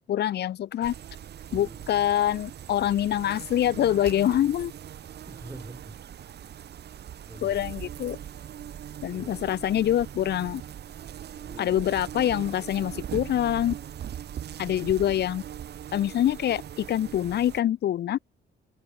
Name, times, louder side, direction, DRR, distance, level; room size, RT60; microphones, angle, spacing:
voice 1, 0.1-0.9 1.5-4.7 7.4-8.2 9.0-10.6 11.6-13.7 14.6-15.4 15.9-18.2, left 11 dB, 55° left, 0.6 m, -25 dB
sound 1, 0.8-17.6, right 10 dB, 55° right, 1.0 m, -40 dB
voice 2, 5.3-6.4 7.3-7.9 9.1-9.6 11.4-11.8 15.1-15.2, right 2 dB, 15° right, 6.3 m, -46 dB
cardioid pair, 90°, 20 cm